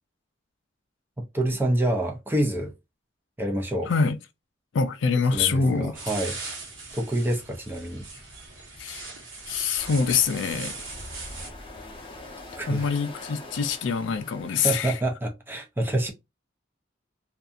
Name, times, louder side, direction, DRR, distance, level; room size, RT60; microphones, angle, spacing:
voice 1, 1.2-2.7 3.4-3.9 5.3-6.4 6.9-8.0 12.6-12.8 14.6-16.1, right 1 dB, 10° right, 0.5 m, -27 dB
voice 2, 4.7-5.9 8.8-9.1 9.5-10.7 12.7-14.9, left 5 dB, 70° left, 0.4 m, -25 dB
sound 1, 5.9-11.5, right 3 dB, 75° right, 1.0 m, -39 dB
sound 2, 9.8-14.8, left 2 dB, 25° left, 0.7 m, -43 dB
2.6 x 2.3 x 2.4 m
head